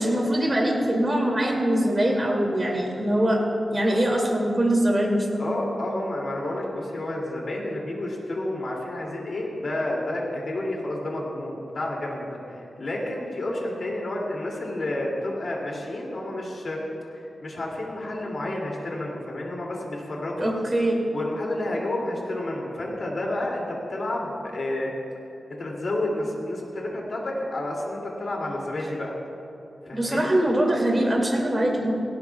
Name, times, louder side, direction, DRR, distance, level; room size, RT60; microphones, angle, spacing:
voice 1, 0.0-3.4 3.7-5.5 20.4-21.0 29.9-31.9, right 1 dB, 20° right, -1 dB, 2.5 m, -23 dB
voice 2, 5.4-20.5 21.1-24.9 25.5-29.1 29.9-30.3, left 1 dB, 55° left, -2 dB, 2.6 m, -30 dB
17.5 x 17.0 x 2.4 m, 2.9 s
wide cardioid pair, 120°, 0 cm